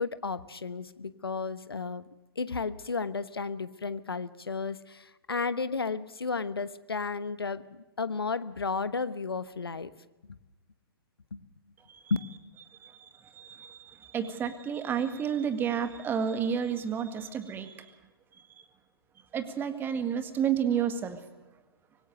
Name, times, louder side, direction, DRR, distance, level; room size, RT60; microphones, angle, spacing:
voice 1, 0.0-2.1 2.4-7.6 8.0-9.9 11.3-11.4, left 4 dB, 75° left, 15 dB, 1.2 m, -33 dB
voice 2, 12.7-17.9 18.4-18.5 19.3-21.2, right 8 dB, 15° right, 10 dB, 1.8 m, -31 dB
25.0 x 19.0 x 6.7 m, 1.1 s
figure-of-eight pair, 115°, 13 cm